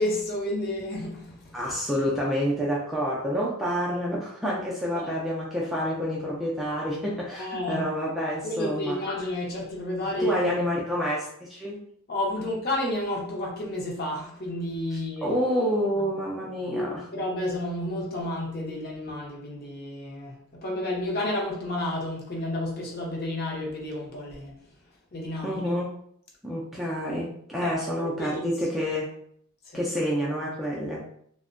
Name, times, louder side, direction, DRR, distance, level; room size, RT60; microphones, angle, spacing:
voice 1, 0.0-1.6 4.9-5.1 7.4-7.8 8.4-10.5 12.1-15.3 16.0-16.1 16.5-24.5 25.1-25.7 27.6-28.4 29.7-29.8, left 1 dB, 45° left, -1 dB, 0.6 m, -31 dB
voice 2, 1.5-9.0 10.2-11.8 14.9-17.0 25.4-25.9 26.4-29.1 29.7-31.1, equal, ahead, -5 dB, 0.3 m, -28 dB
2.6 x 2.1 x 2.5 m, 0.65 s
head